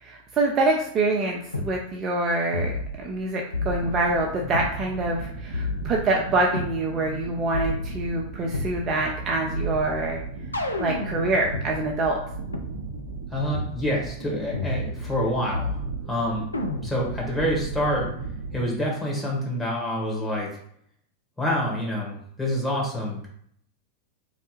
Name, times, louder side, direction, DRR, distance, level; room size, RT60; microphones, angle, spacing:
voice 1, 0.0-10.2 10.8-12.2, right 2 dB, 30° right, 0 dB, 0.5 m, -25 dB
sound 1, 1.5-1.7 2.5-3.2 3.5-4.7 5.5-6.7 7.5-8.8 9.5-11.7 12.5-12.6 13.5-13.8 14.5-15.2 15.5-16.2 16.5-17.2, left 1 dB, 80° left, 0.5 m, -31 dB
sound 2, 3.7-18.6, right 4 dB, 60° right, 0.7 m, -37 dB
voice 2, 13.3-15.8 16.1-16.5 16.8-18.1 18.5-20.5 21.4-23.3, equal, 5° left, -5 dB, 1.7 m, -27 dB
3.9 x 3.3 x 3.1 m, 0.66 s
figure-of-eight pair, 90°, 0 cm